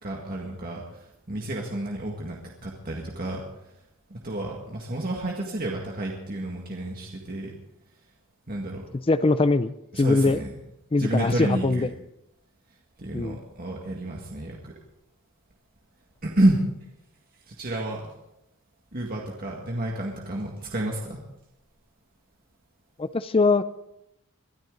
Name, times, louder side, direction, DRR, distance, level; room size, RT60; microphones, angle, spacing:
voice 1, 0.0-3.4 4.1-7.5 8.5-8.9 9.9-10.5 11.0-11.9 13.0-14.7 16.2-16.6 17.5-18.1 18.9-21.2, right 1 dB, 40° right, -1 dB, 1.9 m, -29 dB
voice 2, 9.1-10.4 10.9-11.9 13.1-13.4 23.0-23.6, left 3 dB, 25° left, 13 dB, 0.4 m, -22 dB
22.5 x 13.0 x 3.9 m, 0.83 s
head